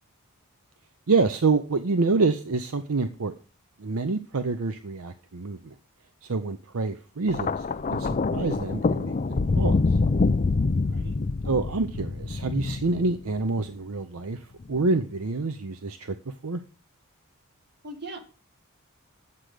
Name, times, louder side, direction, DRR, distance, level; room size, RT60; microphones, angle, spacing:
voice 1, 1.1-3.3 3.8-5.7 6.3-7.6 7.9-9.8 11.4-14.4 14.7-16.0 16.4-16.6, right 3 dB, 70° right, 10 dB, 0.7 m, -27 dB
Thunder, 7.3-13.6 14.6-14.9, left 3 dB, 35° left, 0.4 m, -26 dB
voice 2, 10.9-11.2 17.8-18.2, right 2 dB, 50° right, 5 dB, 1.9 m, -39 dB
9.7 x 7.7 x 5.0 m, 0.35 s
head